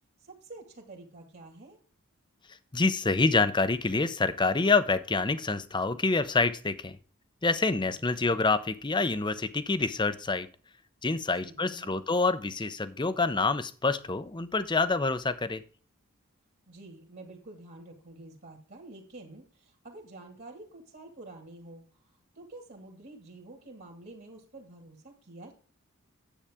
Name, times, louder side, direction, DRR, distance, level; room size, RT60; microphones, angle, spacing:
voice 1, 0.2-1.8 11.4-12.0 16.7-25.5, right 2 dB, 45° right, 3 dB, 2.0 m, -48 dB
voice 2, 2.7-7.0 7.4-10.5 11.0-15.6, left 3 dB, 20° left, 13 dB, 0.6 m, -27 dB
10.0 x 8.1 x 3.5 m, 0.40 s
head